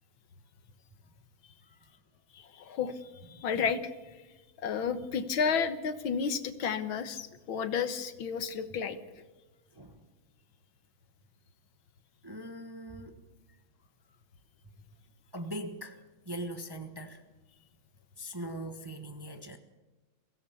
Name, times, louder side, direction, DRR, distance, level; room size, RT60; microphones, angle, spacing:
voice 1, 2.3-3.0 3.4-3.9 4.6-9.0, left 6 dB, 80° left, 11 dB, 2.0 m, -31 dB
voice 2, 3.3-3.6 9.7-10.0 12.2-13.2 15.3-16.0 16.2-17.2 18.2-19.6, right 1 dB, 15° right, 6 dB, 1.0 m, -41 dB
23.0 x 16.5 x 7.1 m, 1.2 s
omnidirectional pair, 2.2 m